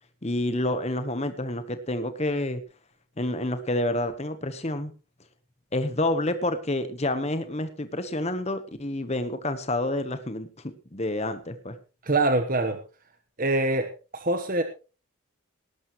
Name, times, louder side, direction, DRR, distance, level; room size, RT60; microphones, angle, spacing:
voice 1, 0.2-2.6 3.2-4.9 5.7-11.7, left 1 dB, 30° left, 10 dB, 1.1 m, -28 dB
voice 2, 12.0-12.8 13.4-14.6, right 2 dB, 40° right, 8 dB, 1.1 m, -24 dB
18.0 x 12.0 x 3.1 m, 0.33 s
head